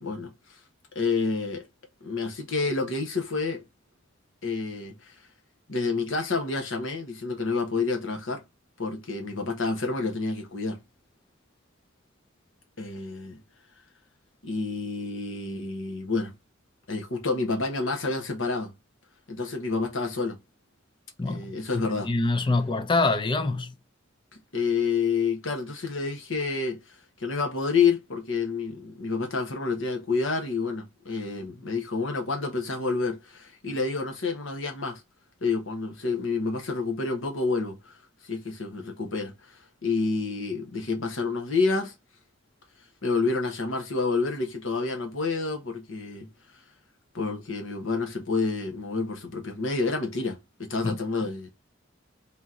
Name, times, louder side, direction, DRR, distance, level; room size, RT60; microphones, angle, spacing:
voice 1, 0.0-0.3 0.9-1.6 2.0-3.6 4.4-5.1 5.7-8.4 8.8-10.8 12.8-13.4 14.4-16.3 16.9-18.7 19.3-20.4 21.3-22.1 24.5-26.8 27.2-35.0 35.4-38.0 38.2-39.3 39.8-41.9 43.0-46.3 47.1-51.5, left 4 dB, 75° left, 1.2 m, -28 dB
voice 2, 21.2-23.7 50.8-51.0, left 3 dB, 25° left, 0.5 m, -26 dB
3.6 x 3.0 x 3.7 m
head